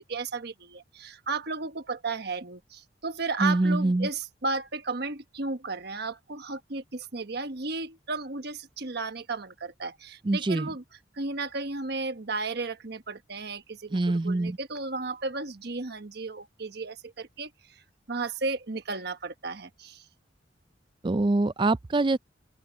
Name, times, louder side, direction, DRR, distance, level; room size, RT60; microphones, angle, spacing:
voice 1, 0.0-10.8 11.1-17.5 18.1-20.0, right 3 dB, 60° right, 1.3 m, -34 dB
voice 2, 3.4-4.1 10.2-10.7 13.9-14.6 21.0-22.2, right 2 dB, 25° right, 0.4 m, -24 dB
open air
head